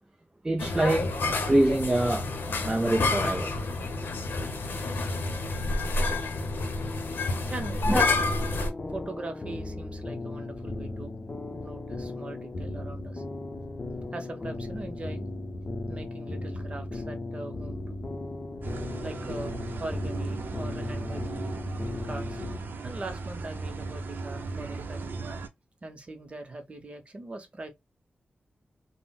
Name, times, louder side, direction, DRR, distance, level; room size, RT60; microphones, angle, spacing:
voice 1, 0.4-3.6 7.9-8.2, right 1 dB, 15° right, 0.3 m, -26 dB
sound 1, 0.6-8.7, left 3 dB, 75° left, 0.7 m, -29 dB
sound 2, 7.9-22.6, left 2 dB, 30° left, 0.7 m, -36 dB
voice 2, 8.9-11.1 11.6-13.2 14.1-15.3 15.9-17.9 19.0-21.3 22.0-22.4 22.8-25.1 25.8-27.7, right 2 dB, 35° right, 0.7 m, -41 dB
sound 3, 18.6-25.5, right 3 dB, 70° right, 0.6 m, -37 dB
3.8 x 2.0 x 2.2 m
wide cardioid pair, 145°, 4 cm